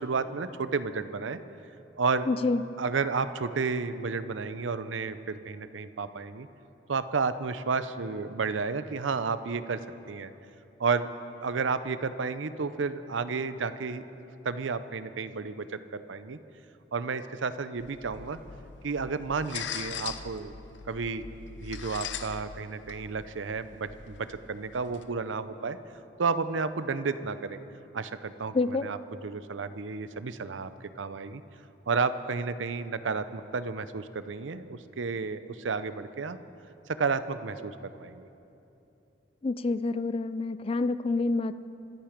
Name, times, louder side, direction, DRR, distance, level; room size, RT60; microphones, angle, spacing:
voice 1, 0.0-1.4 2.0-2.3 2.8-6.5 6.9-9.8 10.1-10.3 10.8-11.1 11.4-14.1 14.4-16.4 16.9-18.4 18.8-20.5 20.9-21.2 21.6-25.8 26.2-27.6 27.9-29.0 29.2-30.7 31.0-31.4 31.9-36.4 36.9-38.3, right 4 dB, 90° right, 13 dB, 0.6 m, -31 dB
voice 2, 2.3-2.7 28.5-28.9 39.4-41.5, left 3 dB, 30° left, 14 dB, 0.4 m, -27 dB
sound 1, 17.8-25.0, left 7 dB, 75° left, 0.7 m, -42 dB
25.5 x 9.0 x 5.1 m, 2.9 s
head